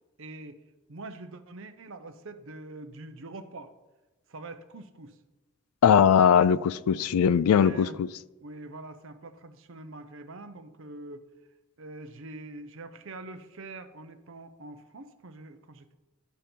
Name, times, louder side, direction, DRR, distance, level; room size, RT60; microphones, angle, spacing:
voice 1, 0.2-0.6 0.9-3.7 4.3-5.2 7.0-7.1 7.6-8.0 8.4-11.3 11.8-16.0, right 2 dB, 60° right, 9 dB, 0.7 m, -44 dB
voice 2, 5.8-8.1, left 8 dB, 75° left, 18 dB, 0.3 m, -20 dB
11.5 x 4.3 x 5.3 m, 1.1 s
head